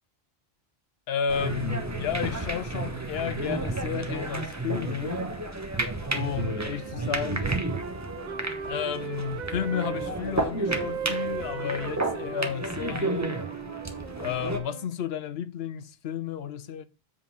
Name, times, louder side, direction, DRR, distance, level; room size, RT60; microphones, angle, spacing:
voice 1, 1.1-5.3 6.1-7.5 8.6-13.4 14.2-16.9, left 8 dB, 80° left, 0.9 m, -32 dB
sound 1, 1.3-14.6, right 2 dB, 15° right, 0.9 m, -32 dB
sound 2, 6.0-10.1 10.7-14.9, right 8 dB, 55° right, 0.7 m, -38 dB
7.7 x 4.0 x 5.4 m
omnidirectional pair, 1.0 m